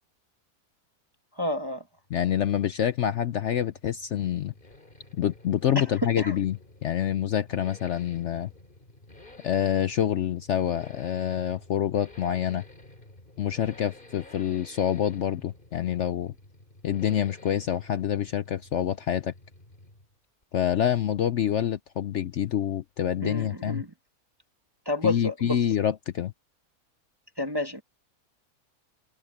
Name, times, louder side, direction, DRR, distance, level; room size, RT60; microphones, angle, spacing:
voice 1, 1.4-1.8 6.2-6.3 23.2-23.9 24.9-25.6 27.4-27.8, left 2 dB, 20° right, 0.8 m, -29 dB
Accelerating revving vroom, 2.0-20.2 20.4-20.5, left 2 dB, 35° left, 3.4 m, -52 dB
voice 2, 2.1-4.5 5.2-8.5 9.4-12.6 13.4-16.3 16.8-19.3 20.5-23.8 25.0-26.3, left 10 dB, 60° left, 0.8 m, -27 dB
omnidirectional pair, 1.6 m